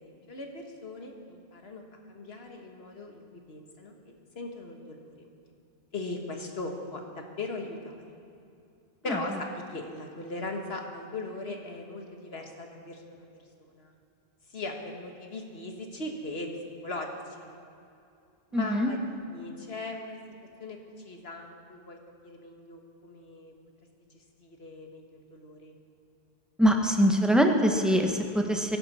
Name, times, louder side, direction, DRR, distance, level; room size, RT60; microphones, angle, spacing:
voice 1, 0.0-1.8 2.1-3.9 4.4-5.3 5.9-7.9 9.0-13.4 13.7-13.9 14.5-16.5 16.8-17.1 17.4-17.5 18.5-20.2 20.6-20.8 21.0-22.0 22.2-23.5 24.4-25.7, left 2 dB, 75° left, 2 dB, 1.8 m, -39 dB
voice 2, 18.5-18.9 26.6-28.8, equal, ahead, 3 dB, 1.2 m, -23 dB
23.0 x 11.0 x 4.3 m, 2.6 s
omnidirectional pair, 1.1 m